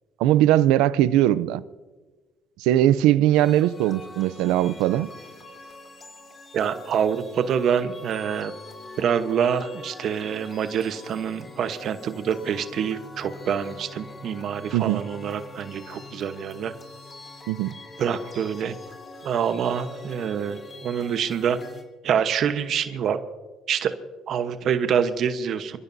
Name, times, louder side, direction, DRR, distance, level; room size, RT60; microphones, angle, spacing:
voice 1, 0.2-1.6 2.6-5.1 14.7-15.0 17.5-17.8, right 13 dB, 90° right, 0.5 m, -20 dB
sound 1, 3.3-21.8, left 3 dB, 30° left, 3.5 m, -44 dB
voice 2, 6.5-8.5 9.0-16.7 18.0-18.7 19.2-21.6 22.0-23.2 23.7-23.9 24.3-25.8, right 8 dB, 60° right, 1.0 m, -26 dB
28.0 x 15.0 x 2.7 m
cardioid pair, 90°, 0 cm